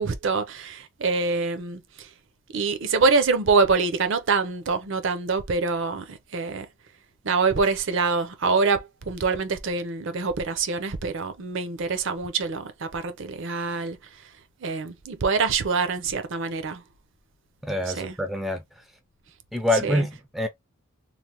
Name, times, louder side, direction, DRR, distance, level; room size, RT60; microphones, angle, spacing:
voice 1, 0.0-2.1 2.5-6.7 7.2-14.2 14.6-16.8 17.8-18.2 19.7-20.1, right 4 dB, 55° right, 0.5 m, -25 dB
voice 2, 17.6-18.6 19.5-20.5, left 1 dB, ahead, 0.4 m, -26 dB
3.2 x 2.1 x 2.8 m
head